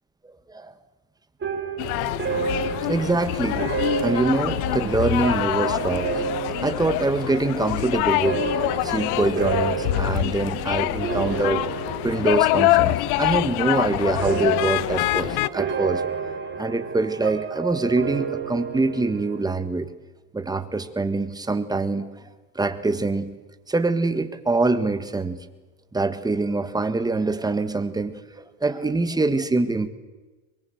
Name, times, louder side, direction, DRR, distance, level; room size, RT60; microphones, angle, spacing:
sound 1, 1.4-12.9 13.2-13.7 14.2-19.5, right 6 dB, 25° right, 3.8 m, -31 dB
sound 2, 1.8-15.5, left 17 dB, 85° left, 1.0 m, -25 dB
voice 1, 2.8-3.6 4.0-6.2 6.6-11.7 12.0-16.0 16.6-19.9 20.3-22.1 22.5-23.4 23.7-25.4 25.9-29.9, right 3 dB, 10° right, 10 dB, 1.6 m, -24 dB
23.5 x 22.5 x 8.0 m, 1.2 s
cardioid pair, 135°, 43 cm